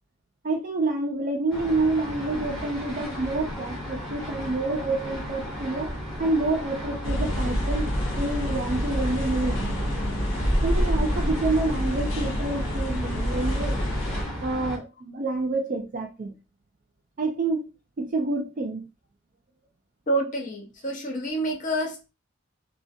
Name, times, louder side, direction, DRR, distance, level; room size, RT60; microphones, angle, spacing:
voice 1, 0.4-5.9 6.2-7.9 8.2-9.9 10.6-13.8 14.4-16.3 17.2-17.7 18.0-18.9, right 2 dB, 40° right, 0.3 m, -28 dB
sound 1, 1.5-14.8, equal, 5° left, 0.7 m, -32 dB
sound 2, 7.0-14.2, equal, 80° left, 0.6 m, -28 dB
voice 2, 20.1-22.1, right 1 dB, 40° left, 0.5 m, -28 dB
2.3 x 2.1 x 2.5 m
head